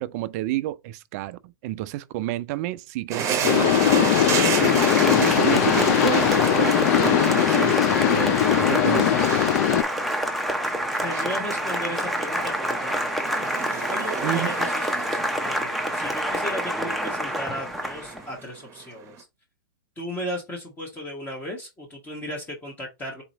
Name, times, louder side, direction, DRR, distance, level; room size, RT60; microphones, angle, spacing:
voice 1, 0.0-9.2 14.2-14.5, right 16 dB, 45° right, 0.4 m, -30 dB
sound 1, 3.1-19.2, right 7 dB, 25° right, 0.8 m, -32 dB
sound 2, 3.4-9.8, left 12 dB, 45° left, 0.4 m, -20 dB
Applause, 3.5-18.3, equal, ahead, 0.6 m, -27 dB
voice 2, 11.0-13.5 13.9-19.2 20.0-23.2, equal, 15° left, 1.1 m, -35 dB
4.2 x 2.9 x 3.8 m
hypercardioid pair, 130°, 12 cm